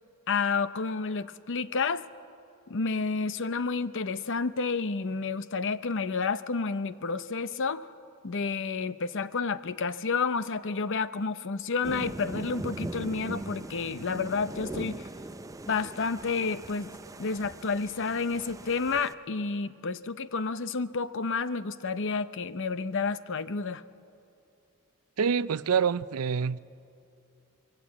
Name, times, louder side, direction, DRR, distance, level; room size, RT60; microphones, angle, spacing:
voice 1, 0.3-2.0 2.7-7.8 8.2-15.1 15.7-16.9 17.2-23.8, left 4 dB, 60° left, 0.7 m, -30 dB
sound 1, 11.8-19.1, right 1 dB, 15° right, 0.5 m, -40 dB
voice 2, 25.2-26.6, right 6 dB, 80° right, 0.5 m, -26 dB
24.5 x 22.0 x 8.4 m
head